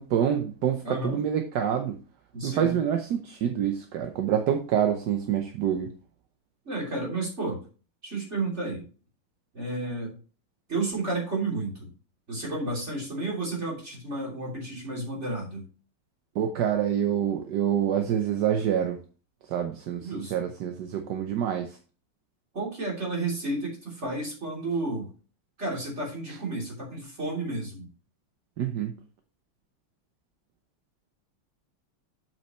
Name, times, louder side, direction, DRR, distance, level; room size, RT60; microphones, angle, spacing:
voice 1, 0.0-2.0 2.4-5.9 16.4-19.0 19.5-21.8 28.6-28.9, right 9 dB, 65° right, 5 dB, 1.2 m, -27 dB
voice 2, 0.8-1.2 2.3-2.8 6.7-7.6 8.0-8.8 9.5-10.2 10.7-11.9 12.3-15.7 20.0-20.5 22.5-25.1 25.6-27.9, right 2 dB, 30° right, -2 dB, 3.3 m, -32 dB
7.6 x 7.5 x 3.0 m, 0.36 s
omnidirectional pair, 2.3 m